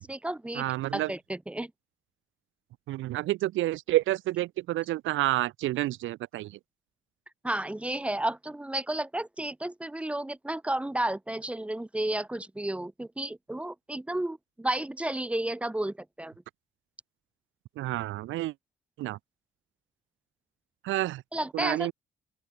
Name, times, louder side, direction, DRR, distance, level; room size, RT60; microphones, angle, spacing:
voice 1, 0.0-0.6 0.9-1.7 7.4-16.3 21.3-21.9, right 1 dB, 5° right, 0.4 m, -32 dB
voice 2, 0.6-1.1 2.9-6.6 17.8-18.5 19.0-19.2 20.8-21.2 21.5-21.9, right 16 dB, 75° right, 0.5 m, -29 dB
open air
cardioid pair, 90°, 20 cm